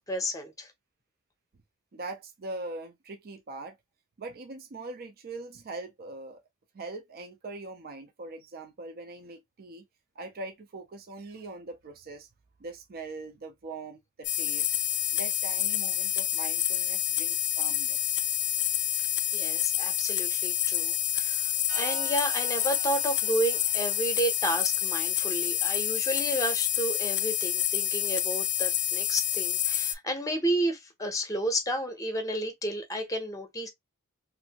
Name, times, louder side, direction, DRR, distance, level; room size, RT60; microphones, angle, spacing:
voice 1, 0.1-0.7 19.3-33.7, right 1 dB, 15° left, 0.8 m, -31 dB
voice 2, 1.9-3.8 4.2-6.4 6.7-9.9 10.2-12.3 12.6-14.7 15.1-18.0, right 3 dB, 45° right, 0.5 m, -41 dB
sound 1, 14.2-29.9, left 11 dB, 50° left, 0.4 m, -28 dB
sound 2, 21.7-25.1, right 6 dB, 70° right, 0.9 m, -44 dB
2.7 x 2.6 x 2.8 m
head